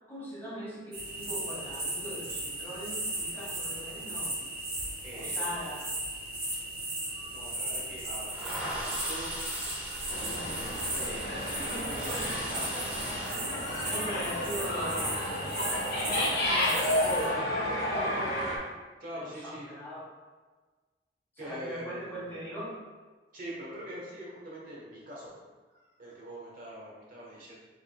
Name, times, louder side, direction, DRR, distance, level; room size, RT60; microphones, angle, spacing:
voice 1, 0.1-4.4 5.1-5.8 10.1-10.6 11.7-12.3 13.8-15.4 16.3-18.4 19.1-20.1 21.4-22.8, equal, 15° left, -7 dB, 1.4 m, -41 dB
sound 1, 0.9-17.3, right 1 dB, 35° right, 1.4 m, -36 dB
voice 2, 5.0-5.7 7.3-9.4 10.9-12.9 13.8-14.2 14.5-14.7 19.0-19.7 21.4-22.4 23.3-25.4 25.7-27.5, right 1 dB, 50° right, -5 dB, 1.3 m, -44 dB
sound 2, 7.2-13.3, equal, 10° right, 0.9 m, -41 dB
sound 3, 10.1-18.6, left 1 dB, 60° left, 1.2 m, -31 dB
4.8 x 4.7 x 2.3 m, 1.3 s
head